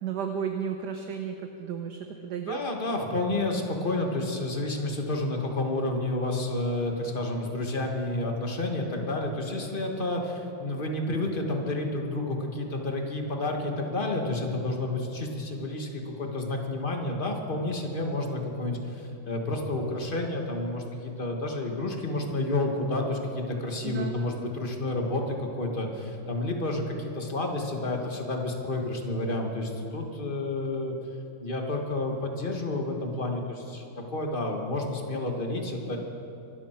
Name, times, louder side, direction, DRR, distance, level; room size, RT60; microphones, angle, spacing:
voice 1, 0.0-2.6 23.8-24.2, right 7 dB, 65° right, 5 dB, 1.3 m, -33 dB
voice 2, 2.5-31.0 31.4-36.0, left 2 dB, 30° left, 2 dB, 1.5 m, -30 dB
24.0 x 12.5 x 4.5 m, 2.9 s
omnidirectional pair, 2.2 m